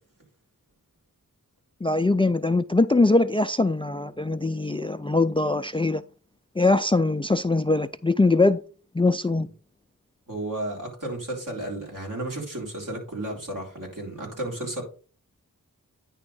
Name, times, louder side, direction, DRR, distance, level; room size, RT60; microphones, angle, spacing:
voice 1, 1.8-6.0 6.6-8.6 8.9-9.5, left 2 dB, 15° left, 0.3 m, -22 dB
voice 2, 10.3-14.8, right 1 dB, 65° right, 3.6 m, -33 dB
9.7 x 3.5 x 5.4 m
wide cardioid pair, 65°, 34 cm